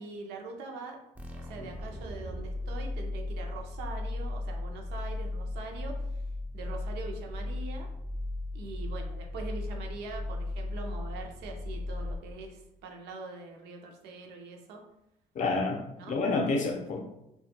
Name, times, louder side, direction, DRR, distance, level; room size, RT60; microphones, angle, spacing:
voice 1, 0.0-6.2 6.5-7.9 8.5-14.8 16.0-16.2, right 3 dB, 85° right, 2 dB, 0.5 m, -43 dB
sound 1, 1.1-12.6, left 2 dB, 10° right, 0.3 m, -36 dB
voice 2, 15.3-17.0, left 3 dB, 50° left, 2 dB, 0.5 m, -29 dB
2.2 x 2.1 x 2.8 m, 0.86 s
cardioid pair, 110°, 17 cm